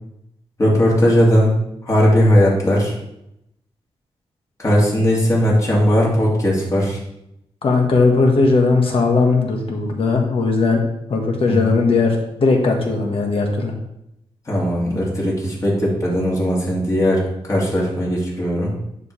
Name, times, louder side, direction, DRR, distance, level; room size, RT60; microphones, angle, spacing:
voice 1, 0.6-1.6 1.8-2.9 4.6-7.0 11.5-11.8 14.5-17.2 17.5-18.7, equal, 30° left, -4 dB, 2.4 m, -17 dB
voice 2, 7.6-10.8 11.1-13.7, left 3 dB, 55° left, 1 dB, 1.5 m, -18 dB
10.5 x 4.9 x 3.3 m, 0.81 s
wide cardioid pair, 145°, 11 cm